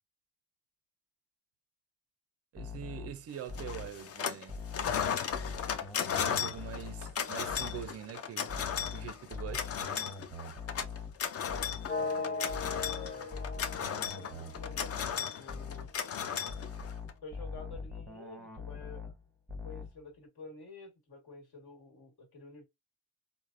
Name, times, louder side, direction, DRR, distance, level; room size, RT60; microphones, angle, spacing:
voice 1, 2.5-4.6 6.2-8.6 8.9-9.7, right 10 dB, 35° right, 0.4 m, -44 dB
sound 1, 2.6-4.0 4.5-7.2 7.5-8.0 8.5-12.0 12.5-15.2 15.5-16.0 16.5-19.2 19.5-20.0, left 4 dB, ahead, 0.9 m, -43 dB
sound 2, 3.6-4.4 4.7-17.1, left 8 dB, 35° left, 0.4 m, -35 dB
voice 2, 11.9-13.4 14.1-15.9 17.2-19.1 19.6-22.6, left 3 dB, 60° left, 1.5 m, -49 dB
sound 3, 11.9-15.8, left 4 dB, 20° left, 1.2 m, -39 dB
3.1 x 2.0 x 2.4 m
cardioid pair, 95°, 44 cm